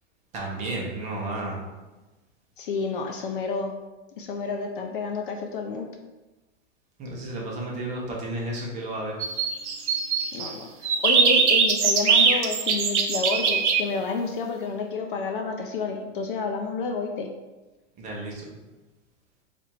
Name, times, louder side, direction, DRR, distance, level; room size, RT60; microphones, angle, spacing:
voice 1, 0.3-1.6 3.1-3.2 7.0-9.2 18.0-18.5, right 2 dB, 20° right, -2 dB, 0.8 m, -32 dB
voice 2, 2.6-3.7 4.2-5.9 10.3-17.3, left 4 dB, 45° left, 3 dB, 0.4 m, -30 dB
sound 1, 9.2-10.5 10.8-13.8, right 5 dB, 65° right, 0.8 m, -21 dB
4.3 x 2.6 x 4.3 m, 1.1 s
hypercardioid pair, 145°, 37 cm